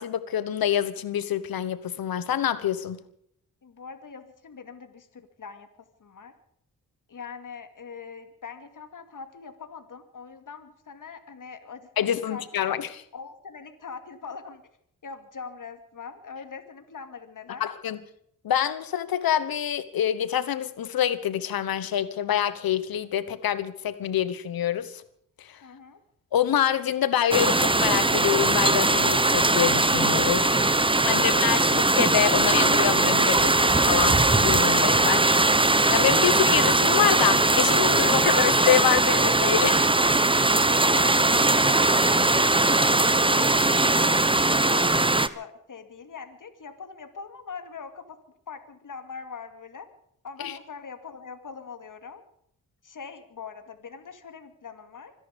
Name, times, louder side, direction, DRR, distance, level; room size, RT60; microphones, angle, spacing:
voice 1, 0.0-3.0 12.0-13.0 17.6-18.0 18.4-25.0 25.4-25.7 26.3-35.2 35.9-39.9 50.4-50.6, left 10 dB, 90° left, 15 dB, 1.2 m, -26 dB
voice 2, 3.6-5.7 6.0-6.3 7.1-12.4 13.1-14.6 15.0-17.7 25.6-26.0 40.9-42.0 42.5-49.9 50.2-52.2 52.8-55.1, left 5 dB, 65° left, 8 dB, 2.3 m, -42 dB
sound 1, 27.3-45.3, right 2 dB, 15° right, 1.0 m, -20 dB
25.5 x 10.5 x 5.2 m, 0.69 s
cardioid pair, 55°, 34 cm